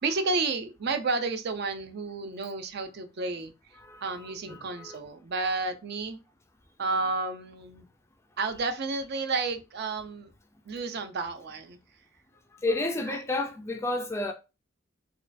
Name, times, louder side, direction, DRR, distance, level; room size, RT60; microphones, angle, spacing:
voice 1, 0.0-3.5 4.0-6.2 6.8-7.8 8.4-10.3 10.7-11.8, right 3 dB, 50° right, 0.4 m, -31 dB
voice 2, 3.8-5.0 12.6-14.3, left 2 dB, 15° left, 0.3 m, -31 dB
4.3 x 2.3 x 2.5 m
head